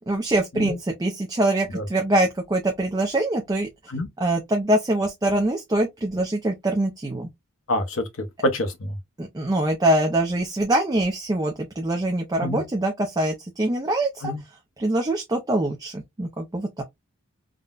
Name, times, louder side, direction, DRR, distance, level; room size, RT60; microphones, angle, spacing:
voice 1, 0.1-3.7 4.2-7.3 9.2-14.3 14.8-16.8, right 1 dB, 15° right, 0.4 m, -24 dB
voice 2, 7.7-9.0 12.4-12.6 14.2-14.4, left 1 dB, 70° left, 0.7 m, -27 dB
3.7 x 2.1 x 2.3 m
head